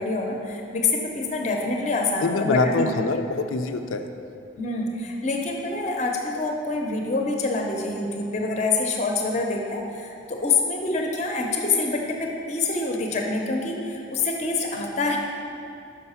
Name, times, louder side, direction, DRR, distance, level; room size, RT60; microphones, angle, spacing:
voice 1, 0.0-2.9 4.6-15.2, left 3 dB, 35° left, 1 dB, 0.6 m, -26 dB
voice 2, 2.2-4.0, left 3 dB, 85° left, 7 dB, 0.4 m, -24 dB
5.7 x 5.2 x 5.6 m, 2.6 s
head